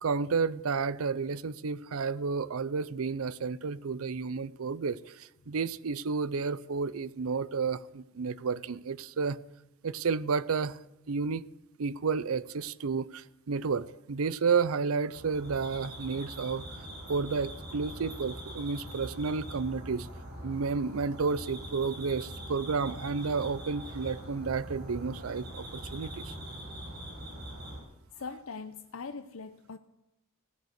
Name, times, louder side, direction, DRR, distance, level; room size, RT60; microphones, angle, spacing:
voice 1, 0.0-9.4 9.8-10.8 11.1-11.4 11.8-16.6 17.1-20.1 20.4-26.3, right 5 dB, 80° right, 0.6 m, -31 dB
sound 1, 15.1-27.8, right 1 dB, 50° right, 7.0 m, -43 dB
voice 2, 28.2-29.8, left 4 dB, 70° left, 0.7 m, -41 dB
16.5 x 10.5 x 8.0 m
head